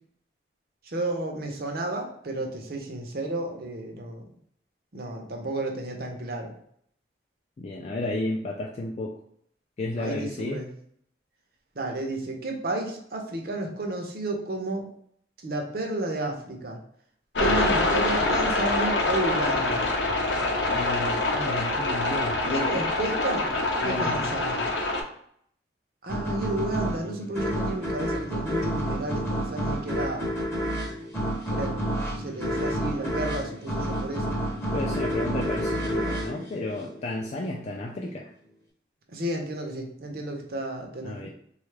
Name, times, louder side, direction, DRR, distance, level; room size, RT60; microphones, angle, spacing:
voice 1, 0.8-4.2 4.9-6.5 10.0-10.7 11.7-14.9 15.4-16.8 17.4-19.9 22.4-23.5 23.8-24.7 26.0-30.3 31.5-34.4 39.1-41.3, right 2 dB, 55° right, 2 dB, 0.6 m, -32 dB
voice 2, 7.6-9.2 9.8-10.6 20.7-22.9 23.7-24.4 34.7-38.3 41.0-41.3, left 2 dB, 35° left, 0 dB, 0.3 m, -32 dB
sound 1, 17.4-25.0, left 2 dB, 85° left, 0.6 m, -25 dB
sound 2, 26.1-37.4, equal, 15° left, 0.7 m, -29 dB
3.6 x 2.4 x 3.2 m, 0.67 s
head